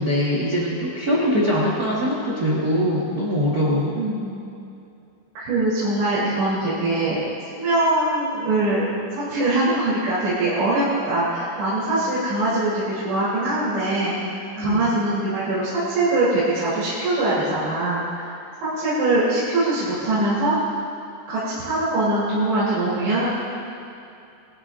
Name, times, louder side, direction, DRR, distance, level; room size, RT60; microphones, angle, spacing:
voice 1, 0.0-4.0 14.6-14.8, equal, 55° right, -6 dB, 1.0 m, -22 dB
voice 2, 4.0-4.4 5.4-8.9 9.2-14.2 14.6-18.4 18.6-20.8 21.3-23.3, right 2 dB, 80° right, -11 dB, 5.8 m, -22 dB
21.0 x 14.0 x 2.7 m, 2.7 s
omnidirectional pair, 4.9 m